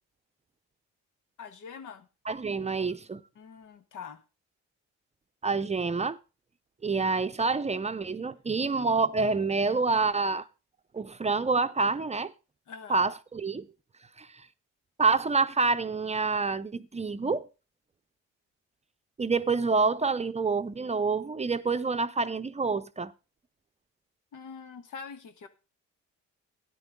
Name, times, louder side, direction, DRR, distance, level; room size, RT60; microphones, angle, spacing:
voice 1, 1.4-2.1 3.3-4.2 12.7-13.0 24.3-25.5, left 6 dB, 80° left, 1.6 m, -44 dB
voice 2, 2.3-3.2 5.4-6.2 6.8-10.5 10.9-12.3 12.9-13.7 14.2-14.3 15.0-17.5 19.2-23.1, right 4 dB, 20° right, 0.6 m, -27 dB
13.0 x 9.9 x 3.6 m
cardioid pair, 90°, 30 cm